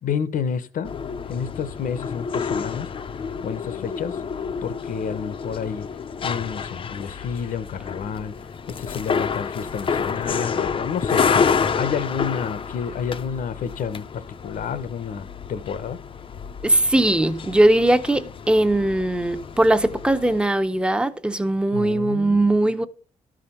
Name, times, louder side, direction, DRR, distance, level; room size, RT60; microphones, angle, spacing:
voice 1, 0.0-0.9 1.3-2.9 3.4-4.2 4.6-5.9 6.2-8.3 8.7-11.4 11.7-16.0 21.7-22.4, left 7 dB, 80° left, 1.0 m, -30 dB
sound 1, 0.8-20.4, left 6 dB, 40° left, 0.6 m, -29 dB
voice 2, 16.6-22.9, right 1 dB, 5° right, 0.7 m, -20 dB
13.0 x 5.1 x 5.6 m
wide cardioid pair, 155°, 14 cm